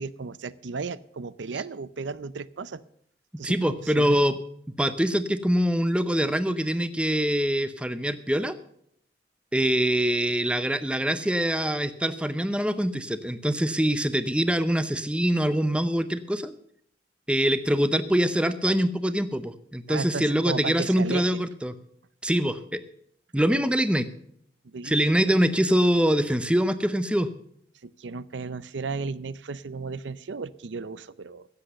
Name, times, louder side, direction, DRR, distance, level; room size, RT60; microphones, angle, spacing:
voice 1, 0.0-2.8 3.4-4.3 19.9-21.3 24.6-24.9 27.8-31.5, right 4 dB, 85° right, 17 dB, 0.6 m, -34 dB
voice 2, 3.4-4.3 4.7-8.6 9.5-16.5 17.3-21.7 22.2-22.8 23.3-24.1 24.8-27.3, equal, 5° right, 12 dB, 0.7 m, -24 dB
16.0 x 7.7 x 6.6 m, 0.70 s
head